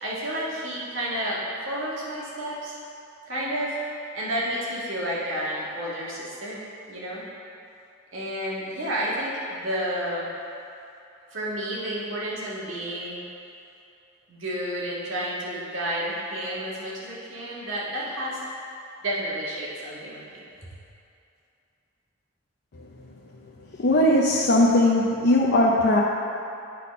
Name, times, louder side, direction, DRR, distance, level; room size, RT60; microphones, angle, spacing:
voice 1, 0.0-2.8 3.3-3.8 4.1-6.6 6.9-7.2 8.1-10.3 11.3-13.2 14.3-18.4 19.0-20.4, equal, 70° right, -6 dB, 1.8 m, -31 dB
voice 2, 23.8-26.0, left 1 dB, 55° left, -4 dB, 0.6 m, -19 dB
9.1 x 4.2 x 5.2 m, 2.7 s
head